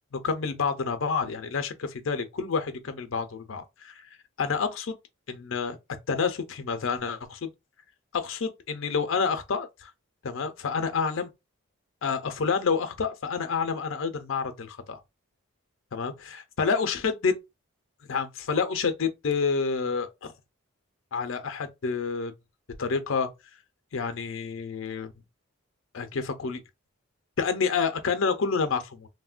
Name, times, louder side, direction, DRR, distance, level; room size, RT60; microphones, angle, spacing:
voice 1, 0.1-4.1 4.4-5.0 5.3-5.8 6.1-7.5 8.1-9.9 10.2-11.3 12.0-15.0 15.9-17.4 18.1-20.3 21.1-22.3 22.8-23.3 23.9-25.1 25.9-26.6 27.4-29.1, left 5 dB, 70° left, 0.5 m, -28 dB
3.2 x 2.1 x 2.4 m
head